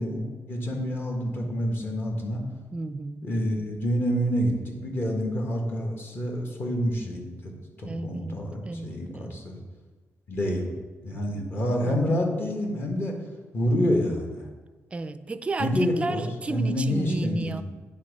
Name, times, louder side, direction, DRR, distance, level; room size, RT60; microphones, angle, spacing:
voice 1, 0.0-2.4 3.2-7.5 7.8-9.6 10.3-10.7 11.0-13.1 13.5-14.4 15.6-16.2 16.5-17.6, equal, 45° left, 1 dB, 1.4 m, -27 dB
voice 2, 2.7-3.3 7.8-9.4 11.8-12.2 14.9-17.6, right 3 dB, 20° right, 12 dB, 0.3 m, -33 dB
9.1 x 3.6 x 5.2 m, 1.3 s
cardioid pair, 130°, 5 cm